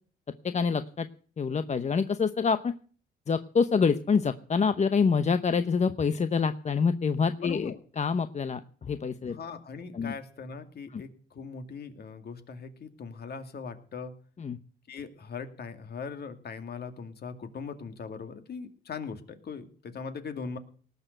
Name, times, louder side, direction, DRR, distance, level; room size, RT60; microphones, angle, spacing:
voice 1, 0.4-1.1 1.4-2.7 3.3-9.4 9.9-10.1 10.9-11.0 14.4-14.6, left 5 dB, 35° left, 11 dB, 0.9 m, -26 dB
voice 2, 7.4-7.8 9.3-14.1 14.9-20.6, left 5 dB, 55° left, 8 dB, 2.4 m, -40 dB
18.5 x 6.8 x 7.8 m, 0.43 s
cardioid pair, 90°, 20 cm